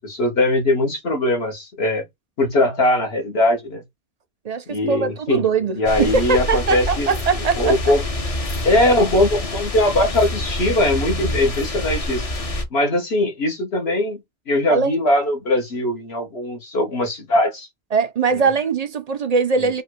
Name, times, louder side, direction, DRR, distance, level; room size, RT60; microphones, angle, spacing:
voice 1, 0.0-2.0 2.4-3.8 4.7-5.4 5.8-7.1 7.6-8.0 8.6-12.2 12.7-14.2 14.5-17.7 19.6-19.8, left 1 dB, 65° left, 1.5 m, -20 dB
voice 2, 4.4-7.8 14.7-15.0 17.9-19.8, right 5 dB, 45° right, 0.6 m, -21 dB
sound 1, 5.8-12.6, left 1 dB, 35° left, 0.8 m, -26 dB
3.5 x 2.5 x 4.5 m
omnidirectional pair, 1.1 m